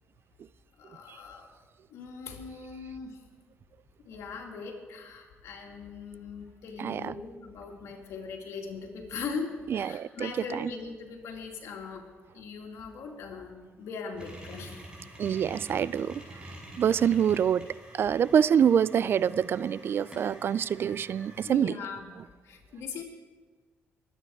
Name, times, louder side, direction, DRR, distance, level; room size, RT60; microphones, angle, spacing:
voice 1, 0.8-1.5 1.9-3.2 4.1-12.0 12.3-14.8 15.2-15.4 16.5-17.1 21.4-22.1 22.4-23.0, left 5 dB, 80° left, 1 dB, 2.5 m, -40 dB
voice 2, 6.8-7.1 9.7-10.7 15.2-16.2 16.8-17.7 17.9-21.7, right 8 dB, 55° right, 19 dB, 0.4 m, -26 dB
sound 1, 14.2-21.5, right 1 dB, 20° right, 5.5 m, -47 dB
22.5 x 9.4 x 4.8 m, 1.5 s
cardioid pair, 95°, 5 cm